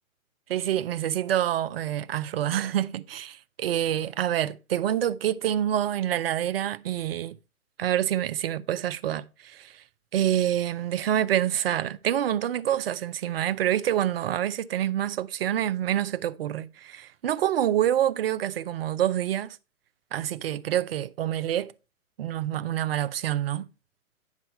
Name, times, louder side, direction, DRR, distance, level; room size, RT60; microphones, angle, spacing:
voice 1, 0.5-7.4 7.8-9.8 10.1-19.6 20.1-21.7 22.2-23.7, right 11 dB, 45° right, 0.5 m, -27 dB
9.7 x 5.5 x 4.2 m
figure-of-eight pair, 125°, 43 cm